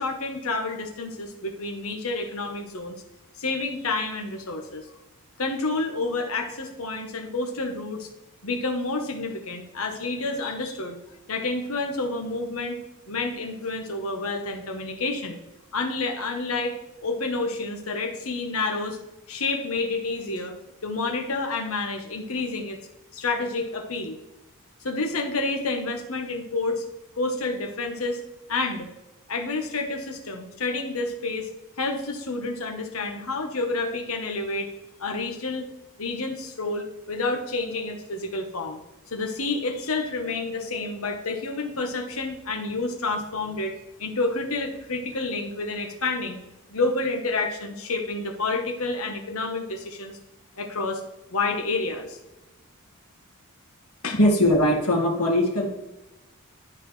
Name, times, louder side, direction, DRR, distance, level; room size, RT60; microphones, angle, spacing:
voice 1, 0.0-3.0 3.4-4.9 5.4-8.1 8.4-11.0 11.3-12.8 13.1-15.4 15.7-16.8 17.0-19.0 19.3-20.6 20.8-22.8 23.1-24.2 24.8-26.8 27.2-28.2 28.5-28.9 29.3-31.5 31.8-34.7 35.0-35.7 36.0-38.8 39.1-46.4 46.7-50.2 50.6-51.0 51.3-52.2 54.0-54.2, left 3 dB, 70° left, 4 dB, 1.2 m, -29 dB
voice 2, 54.2-55.7, left 1 dB, 85° left, -2 dB, 1.9 m, -20 dB
12.0 x 4.3 x 3.3 m, 0.99 s
head